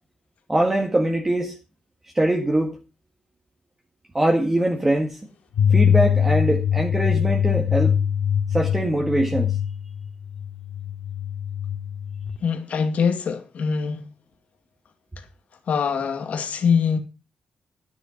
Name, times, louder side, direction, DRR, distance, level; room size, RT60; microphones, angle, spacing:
voice 1, 0.5-1.5 2.1-2.8 4.1-5.2 5.7-8.0 8.5-9.5, right 1 dB, 15° right, 1.6 m, -22 dB
sound 1, 5.5-12.4, left 8 dB, 80° left, 2.3 m, -23 dB
voice 2, 12.4-14.1 15.2-15.3 15.7-17.0, left 6 dB, 60° left, 2.3 m, -23 dB
10.5 x 10.0 x 4.4 m
cardioid pair, 135°, 3 cm